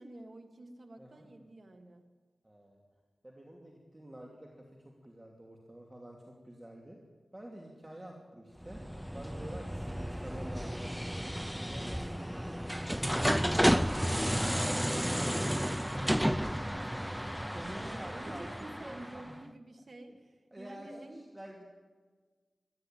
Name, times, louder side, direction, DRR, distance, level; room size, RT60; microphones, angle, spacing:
voice 1, 0.0-2.1 13.5-21.3, right 1 dB, 55° right, 4 dB, 1.8 m, -50 dB
voice 2, 1.0-1.3 2.4-2.8 3.2-7.0 7.3-8.8 9.1-12.4 13.0-14.0 17.5-19.3 20.1-20.2 20.5-21.6, right 1 dB, 20° right, -1 dB, 2.7 m, -48 dB
sound 1, 8.6-19.3, equal, ahead, 0.6 m, -32 dB
21.5 x 13.5 x 9.2 m, 1.4 s
wide cardioid pair, 95°, 0 cm